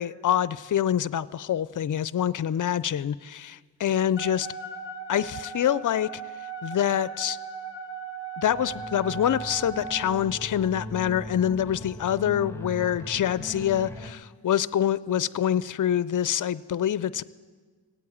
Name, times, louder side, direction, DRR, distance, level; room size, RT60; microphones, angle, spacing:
voice 1, 0.0-4.5 5.1-6.1 6.6-7.4 8.4-17.2, left 10 dB, 50° left, 18 dB, 0.5 m, -26 dB
Wind instrument woodwind instrument, 4.2-10.2, right 5 dB, 25° left, 1.9 m, -38 dB
sound 1, 8.4-14.1, left 1 dB, 5° left, 1.2 m, -39 dB
17.5 x 8.6 x 8.5 m, 1.5 s
cardioid pair, 50°, 42 cm